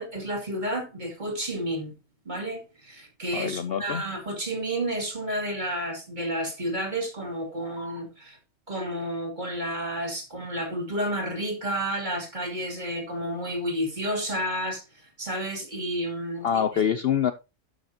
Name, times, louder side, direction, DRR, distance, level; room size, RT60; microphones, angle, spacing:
voice 1, 0.0-1.9 2.3-8.4 8.7-16.8, right 1 dB, 35° right, 2.6 m, -31 dB
voice 2, 3.3-4.0 16.4-17.3, left 8 dB, 55° left, 0.7 m, -25 dB
12.0 x 6.1 x 2.9 m
omnidirectional pair, 1.4 m